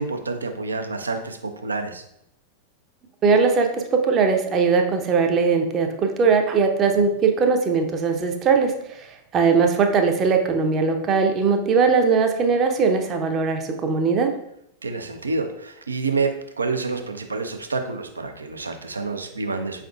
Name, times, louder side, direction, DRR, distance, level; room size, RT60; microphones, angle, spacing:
voice 1, 0.0-2.0 14.8-19.8, right 3 dB, 75° right, 6 dB, 0.5 m, -28 dB
voice 2, 3.2-8.7 9.3-14.3, right 5 dB, 30° right, 4 dB, 0.6 m, -20 dB
5.3 x 3.6 x 2.3 m, 0.76 s
figure-of-eight pair, 90°, 0 cm